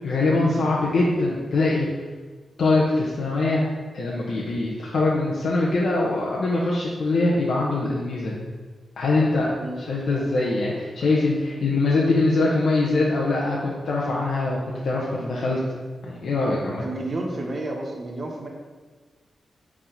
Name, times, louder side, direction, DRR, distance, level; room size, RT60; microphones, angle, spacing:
voice 1, 0.0-1.9 2.6-3.6 3.9-8.4 9.0-9.5 9.9-15.6 16.0-16.8, left 2 dB, 75° left, -5 dB, 0.9 m, -23 dB
voice 2, 16.8-18.5, right 2 dB, 45° right, 1 dB, 1.1 m, -31 dB
5.0 x 3.6 x 5.2 m, 1.4 s
cardioid pair, 70°, 0 cm